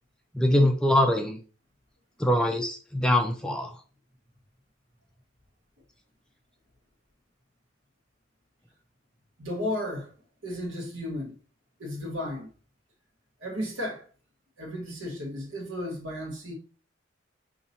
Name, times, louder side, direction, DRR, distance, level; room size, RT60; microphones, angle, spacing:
voice 1, 0.3-1.4 2.2-3.8, left 1 dB, 5° left, 0.3 m, -23 dB
voice 2, 9.4-10.1 10.4-11.3 11.8-12.5 13.4-14.0 14.6-16.5, left 1 dB, 70° right, 1.3 m, -34 dB
5.3 x 2.8 x 2.7 m
head